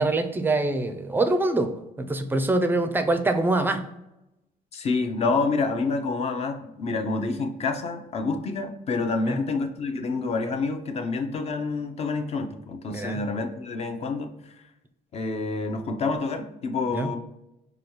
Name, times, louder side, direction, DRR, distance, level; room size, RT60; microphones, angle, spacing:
voice 1, 0.0-1.7 2.0-3.8 9.3-9.4 12.9-13.2 16.9-17.1, right 2 dB, 10° right, 8 dB, 0.4 m, -24 dB
voice 2, 4.7-14.3 15.1-17.2, left 3 dB, 40° left, 6 dB, 0.6 m, -28 dB
4.9 x 2.3 x 3.0 m, 0.90 s
cardioid pair, 110°, 17 cm